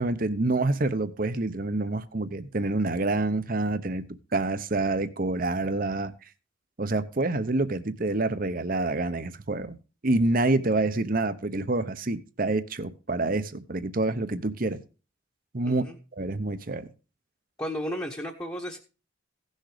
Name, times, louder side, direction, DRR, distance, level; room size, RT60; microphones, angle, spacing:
voice 1, 0.0-6.1 6.8-9.8 10.0-14.8 15.5-15.8 16.1-16.9, right 2 dB, 45° right, 0.9 m, -27 dB
voice 2, 15.6-16.0 17.6-18.8, equal, 15° left, 1.2 m, -33 dB
16.5 x 6.5 x 5.0 m
head